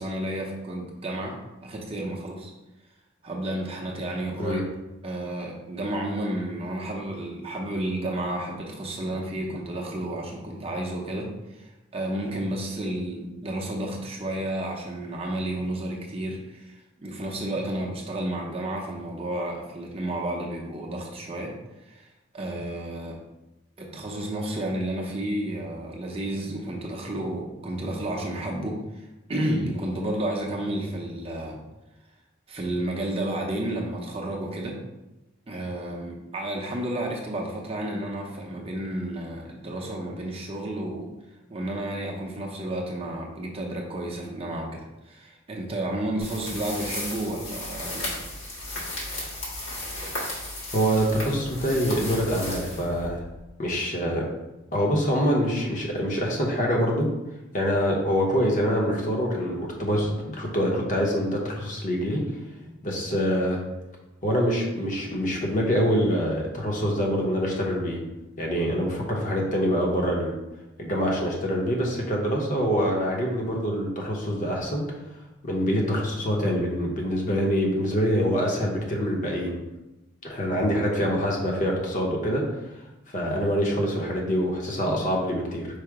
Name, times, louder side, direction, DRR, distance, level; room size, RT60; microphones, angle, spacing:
voice 1, 0.0-1.4 1.6-2.5 3.2-4.6 5.0-21.6 21.8-23.2 23.8-31.6 32.5-34.8 35.5-41.1 41.5-48.1 62.6-62.7, right 1 dB, 30° right, -1 dB, 0.6 m, -31 dB
sound 1, 46.2-53.4, left 1 dB, 80° left, 1.4 m, -35 dB
voice 2, 50.7-53.2 53.6-54.3 54.7-57.1 57.5-62.2 62.8-63.6 64.2-68.0 68.4-70.3 70.8-75.0 75.4-79.5 80.2-82.4 83.1-85.7, equal, 40° left, -1 dB, 0.8 m, -25 dB
4.8 x 2.0 x 4.6 m, 1.0 s
head